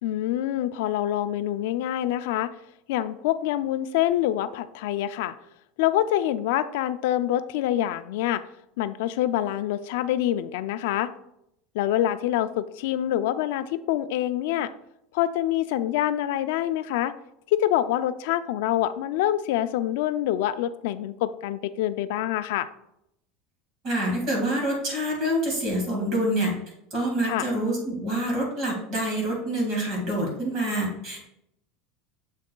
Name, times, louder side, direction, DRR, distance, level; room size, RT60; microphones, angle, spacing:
voice 1, 0.0-2.5 2.9-5.3 5.8-8.4 8.8-11.1 11.7-14.7 15.1-17.1 17.5-22.7 27.2-27.5, left 12 dB, 65° left, 13 dB, 0.3 m, -26 dB
voice 2, 23.8-26.5 26.9-31.2, right 1 dB, 35° right, -1 dB, 2.0 m, -26 dB
7.1 x 6.0 x 2.3 m, 0.79 s
supercardioid pair, 175°, 0 cm